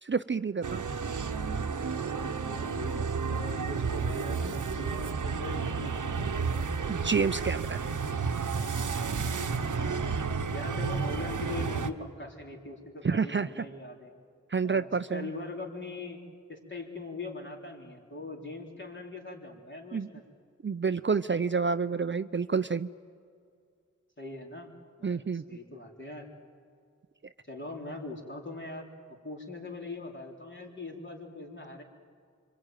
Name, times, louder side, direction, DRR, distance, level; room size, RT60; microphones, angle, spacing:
voice 1, 0.0-0.8 6.9-7.8 13.0-13.6 14.5-15.3 19.9-20.1 20.6-22.9 25.0-25.4, right 5 dB, 40° right, 12 dB, 0.6 m, -29 dB
sound 1, 0.6-11.9, right 5 dB, 85° right, 1.1 m, -31 dB
voice 2, 2.2-6.6 9.3-10.1 10.5-14.1 14.6-16.2 16.5-20.2 24.2-24.7 25.0-26.3 27.5-28.8 29.2-31.8, left 2 dB, 40° left, 0 dB, 4.2 m, -41 dB
25.5 x 24.0 x 9.2 m, 2.3 s
cardioid pair, 50°, 30 cm